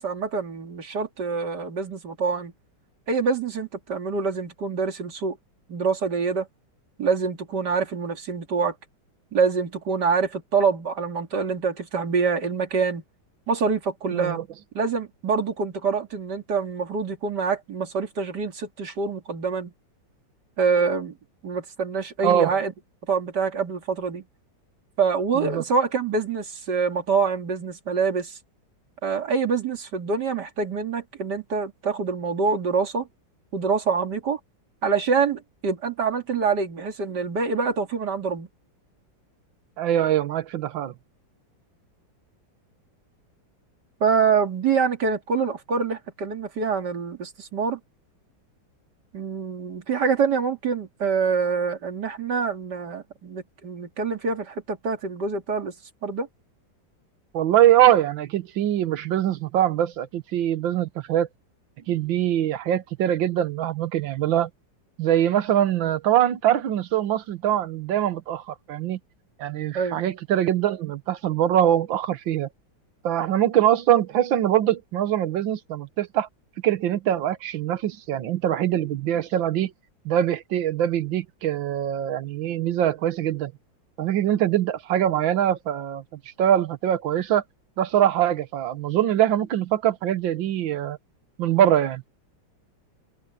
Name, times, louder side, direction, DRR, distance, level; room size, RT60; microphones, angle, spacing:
voice 1, 0.0-2.5 3.1-5.4 5.7-6.5 7.0-8.7 9.3-13.0 13.5-14.4 14.7-19.7 20.6-21.1 21.4-22.7 23.1-24.2 25.0-28.4 29.0-33.1 33.5-34.4 34.8-38.5 44.0-47.8 49.1-55.7 56.0-56.3 69.7-70.0, right 5 dB, 60° right, 2.9 m, -25 dB
voice 2, 14.1-14.4 22.2-22.6 25.4-25.6 39.8-40.9 57.3-61.3 61.9-64.5 65.0-69.0 69.4-72.5 73.0-76.3 76.6-79.7 80.1-83.5 84.0-86.0 86.4-87.4 87.8-91.0 91.4-92.0, right 11 dB, 80° right, 1.7 m, -23 dB
open air
omnidirectional pair, 2.1 m